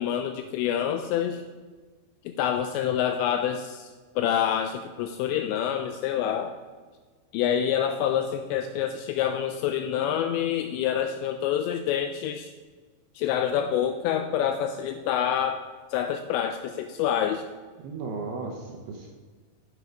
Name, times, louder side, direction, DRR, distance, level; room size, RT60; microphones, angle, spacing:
voice 1, 0.0-1.4 2.3-3.9 4.2-6.6 7.3-12.5 13.2-15.6 15.9-17.4, left 9 dB, 85° left, 7 dB, 2.5 m, -27 dB
voice 2, 17.8-19.1, right 4 dB, 75° right, 1 dB, 2.4 m, -35 dB
10.5 x 8.2 x 4.6 m, 1.4 s
omnidirectional pair, 5.5 m